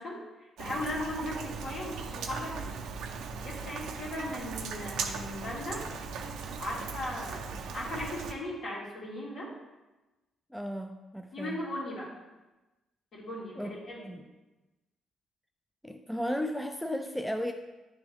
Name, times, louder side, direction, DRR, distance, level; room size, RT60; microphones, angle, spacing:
voice 1, 0.0-2.8 3.4-5.9 6.6-9.5 11.3-12.1 13.1-14.2, left 1 dB, 60° left, -4 dB, 2.1 m, -38 dB
Rain, 0.6-8.3, right 5 dB, 80° right, 0.5 m, -38 dB
voice 2, 10.5-11.6 13.6-14.2 15.8-17.5, equal, ahead, 5 dB, 0.4 m, -35 dB
9.6 x 3.4 x 3.4 m, 1.1 s
cardioid pair, 90°, 0 cm